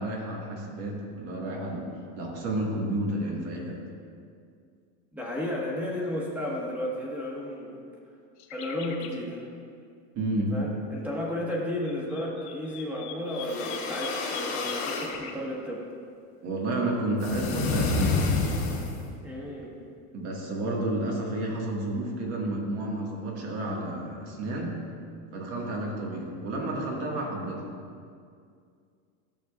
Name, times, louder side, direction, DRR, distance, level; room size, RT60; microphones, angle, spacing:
voice 1, 0.0-3.8 10.2-10.6 16.4-18.3 20.1-24.8 25.3-27.6, right 1 dB, 45° right, -1 dB, 1.7 m, -31 dB
voice 2, 5.1-7.8 8.5-9.5 10.5-15.8 19.2-19.7, left 1 dB, 5° right, -3 dB, 1.4 m, -33 dB
sound 1, 8.4-9.2 11.6-15.3, left 8 dB, 85° left, 0.9 m, -43 dB
sound 2, 13.3-15.1 17.2-19.1, left 4 dB, 45° left, 1.4 m, -29 dB
13.0 x 6.5 x 2.4 m, 2.3 s
supercardioid pair, 150°, 34 cm